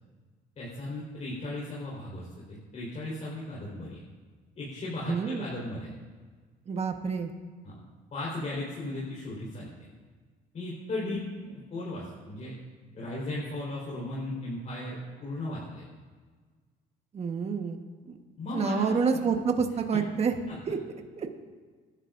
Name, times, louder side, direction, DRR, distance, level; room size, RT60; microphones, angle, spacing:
voice 1, 0.6-4.0 4.6-5.9 7.6-7.8 8.1-9.7 10.5-12.6 12.9-15.9 18.4-19.2 19.9-20.0 20.5-20.6, left 2 dB, 45° left, -6 dB, 4.4 m, -36 dB
voice 2, 5.1-5.4 6.7-7.3 17.1-17.8 18.1-18.2 18.5-20.3 20.7-20.8 21.2-21.3, right 5 dB, 40° right, 4 dB, 1.4 m, -28 dB
26.5 x 11.5 x 2.6 m, 1.5 s
cardioid pair, 110°, 17 cm